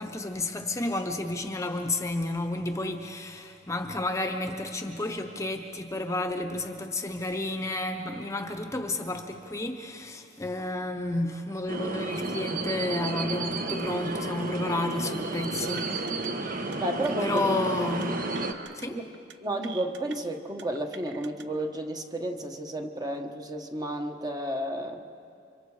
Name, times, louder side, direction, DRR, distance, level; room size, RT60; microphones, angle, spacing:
voice 1, 0.0-16.0 17.2-18.2 18.7-19.0, left 2 dB, 15° left, 6 dB, 1.0 m, -31 dB
sound 1, 11.7-18.5, right 2 dB, 50° right, 1.2 m, -32 dB
sound 2, 15.8-16.3 16.6-16.8 17.0-17.4 18.0-18.9 19.1-19.3 19.6-20.2 20.6-21.4, right 6 dB, 70° right, 0.9 m, -47 dB
voice 2, 16.8-17.4 18.9-19.0 19.4-25.0, right 1 dB, 20° right, 4 dB, 1.3 m, -32 dB
30.0 x 25.0 x 4.9 m, 2.5 s
head